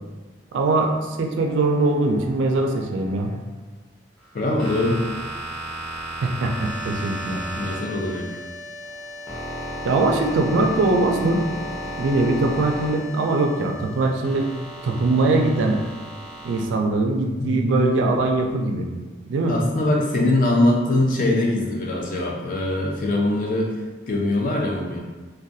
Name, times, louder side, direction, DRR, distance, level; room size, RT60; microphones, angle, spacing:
voice 1, 0.5-3.3 6.2-7.4 9.9-11.4 12.0-14.5 14.8-15.8 16.4-18.9 19.3-19.6, right 2 dB, 85° right, 2 dB, 0.3 m, -21 dB
sound 1, 1.4-3.4 4.2-8.4 8.8-13.4 14.2-16.6, right 1 dB, 5° left, 0.6 m, -35 dB
voice 2, 4.3-5.0 7.5-8.3 17.4-17.8 19.5-23.7 24.1-25.0, left 1 dB, 45° left, -1 dB, 0.4 m, -22 dB
sound 2, 6.4-17.5, left 2 dB, 80° left, 0.8 m, -40 dB
2.3 x 2.2 x 2.6 m, 1.3 s
head